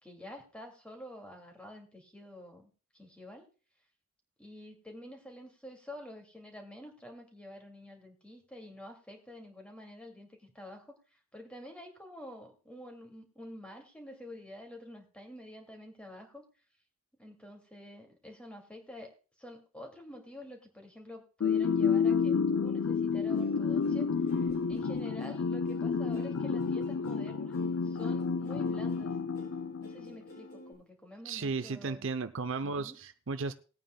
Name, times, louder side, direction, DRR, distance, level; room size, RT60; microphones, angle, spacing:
voice 1, 0.0-2.7 2.9-3.5 4.4-16.4 17.2-19.1 19.4-27.6 27.8-29.1 29.8-32.1 32.6-33.0, left 1 dB, 5° left, 2 dB, 2.4 m, -48 dB
sound 1, 21.4-30.2, left 5 dB, 90° left, 0.5 m, -30 dB
Plucked string instrument, 23.3-30.7, equal, 60° left, 6.4 m, -52 dB
voice 2, 31.2-33.5, right 4 dB, 65° right, 11 dB, 0.7 m, -34 dB
20.0 x 9.1 x 2.3 m, 0.36 s
head